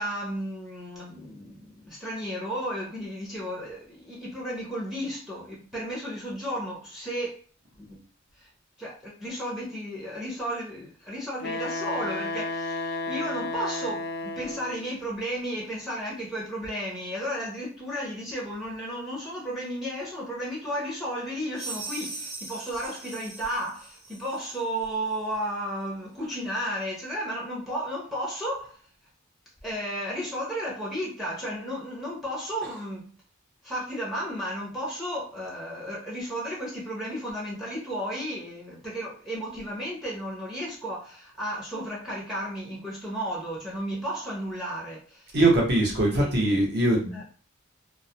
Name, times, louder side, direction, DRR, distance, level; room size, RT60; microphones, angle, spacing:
voice 1, 0.0-7.4 7.8-8.0 8.4-8.5 8.8-28.8 29.6-33.1 33.6-45.4 46.1-46.5 47.1-47.2, equal, ahead, 0.6 m, -33 dB
Wind instrument woodwind instrument, 11.4-14.9, left 3 dB, 50° left, 0.3 m, -32 dB
sound 1, 21.5-24.5, right 3 dB, 90° right, 0.8 m, -40 dB
voice 2, 45.3-47.2, right 1 dB, 55° right, 0.8 m, -22 dB
2.3 x 2.0 x 2.7 m
head